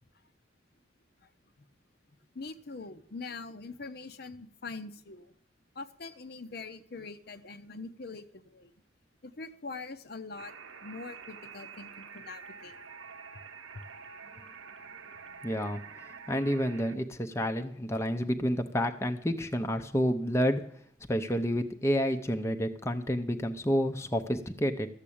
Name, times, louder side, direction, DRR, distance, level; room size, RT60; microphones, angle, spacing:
voice 1, 2.3-5.3 5.7-8.7 9.2-10.5 10.8-12.8, left 3 dB, 50° left, 10 dB, 0.8 m, -43 dB
sound 1, 10.4-17.0, right 6 dB, 85° right, 1.1 m, -47 dB
voice 2, 15.4-20.6 21.1-24.9, equal, 15° left, 6 dB, 0.7 m, -29 dB
13.5 x 7.5 x 8.6 m, 0.64 s
head